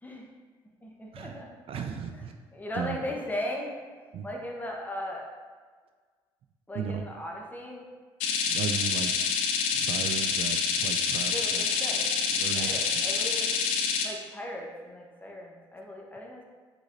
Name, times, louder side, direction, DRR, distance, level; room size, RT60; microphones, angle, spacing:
voice 1, 0.8-2.2 2.5-5.3 6.7-7.9 11.3-12.1 12.6-13.5 14.0-16.4, left 1 dB, 15° left, -1 dB, 1.0 m, -38 dB
voice 2, 1.7-2.3 2.8-3.0 4.1-4.3 6.7-7.0 8.5-9.2 9.7-11.6 12.3-12.8, right 7 dB, 55° right, 6 dB, 0.4 m, -35 dB
sound 1, 8.2-14.1, left 6 dB, 85° left, 0.5 m, -27 dB
4.8 x 3.8 x 2.6 m, 1.5 s
supercardioid pair, 65°, 11 cm